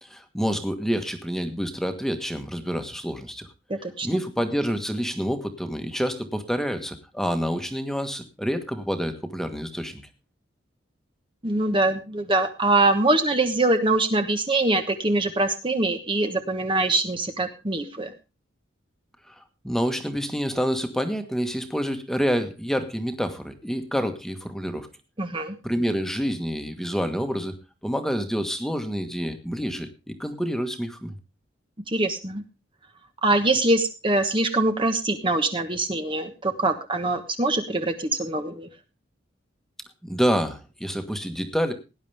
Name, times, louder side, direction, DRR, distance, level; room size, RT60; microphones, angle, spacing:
voice 1, 0.0-3.5 4.0-10.0 19.3-24.9 25.6-27.6 27.8-31.1 40.0-41.7, equal, ahead, 7 dB, 1.5 m, -28 dB
voice 2, 3.7-4.1 11.4-18.1 25.2-25.5 31.9-32.4 33.2-38.7, right 2 dB, 25° right, 6 dB, 1.2 m, -23 dB
18.0 x 10.5 x 3.4 m, 0.29 s
head